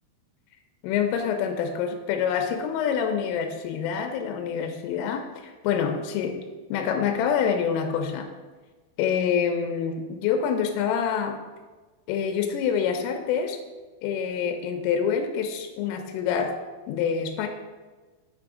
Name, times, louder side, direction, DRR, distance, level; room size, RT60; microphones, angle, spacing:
voice 1, 0.8-6.4 6.7-8.3 9.0-11.4 12.1-13.6 14.0-16.5 16.9-17.5, left 7 dB, 90° left, 5 dB, 3.2 m, -26 dB
6.8 x 6.6 x 3.6 m, 1.3 s
omnidirectional pair, 5.7 m